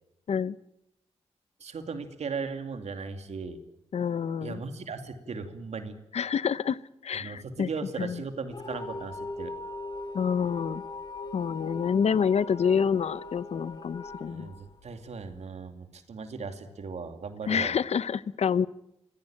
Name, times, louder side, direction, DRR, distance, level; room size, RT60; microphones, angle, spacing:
voice 1, 1.6-3.6 4.4-6.0 7.2-9.5 14.3-17.7, right 4 dB, 75° right, 7 dB, 2.6 m, -37 dB
voice 2, 3.9-4.6 6.1-6.8 7.0-7.7 8.0-8.2 10.1-10.8 11.3-14.5 17.5-18.7, left 7 dB, 75° left, 17 dB, 0.8 m, -27 dB
sound 1, 8.5-15.4, left 2 dB, 40° left, 2.3 m, -40 dB
24.5 x 16.5 x 8.9 m, 0.82 s
wide cardioid pair, 80°, 11 cm